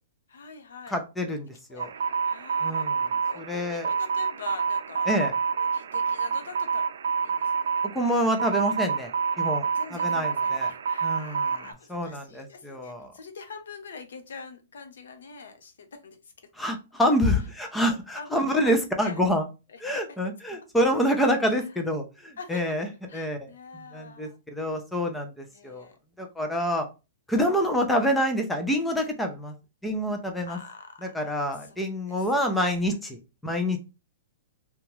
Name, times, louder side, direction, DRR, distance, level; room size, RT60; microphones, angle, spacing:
voice 1, 0.3-1.0 1.7-2.9 3.2-5.1 5.6-6.9 7.2-7.5 9.7-16.2 18.1-19.3 19.7-20.0 21.5-21.6 22.4-24.4 24.7-24.8 25.5-26.0 30.5-31.1 31.4-32.2 33.0-33.2, left 5 dB, 85° left, 7 dB, 0.7 m, -44 dB
voice 2, 0.9-1.9 2.6-3.9 5.1-5.3 7.9-9.1 9.4-9.6 9.9-10.7 11.0-11.6 11.9-13.1 16.6-19.5 19.8-23.5 23.7-25.9 26.2-26.9 27.3-29.5 29.8-30.6 31.0-33.2 33.4-33.8, equal, 5° left, 4 dB, 0.4 m, -27 dB
sound 1, 1.8-11.7, right 6 dB, 90° right, 0.4 m, -28 dB
2.9 x 2.2 x 2.9 m, 0.28 s
hypercardioid pair, 175°, 0 cm